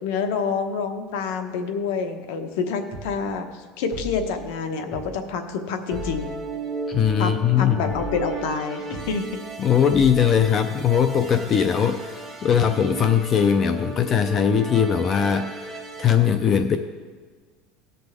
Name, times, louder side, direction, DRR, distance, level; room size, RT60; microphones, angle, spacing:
voice 1, 0.0-3.5 3.8-6.4 7.2-9.2, left 5 dB, 75° left, 6 dB, 1.0 m, -27 dB
sound 1, 2.9-3.1 3.9-4.3 4.9-5.1 5.9-6.3 6.9-7.1 7.9-8.3 8.9-9.1 9.9-10.3, left 2 dB, 5° left, 2.0 m, -35 dB
sound 2, 5.9-16.1, right 3 dB, 15° right, 1.7 m, -35 dB
voice 2, 6.9-7.9 9.6-16.8, left 8 dB, 30° left, 9 dB, 0.4 m, -20 dB
17.5 x 6.1 x 3.5 m, 1.5 s
cardioid pair, 160°, 0 cm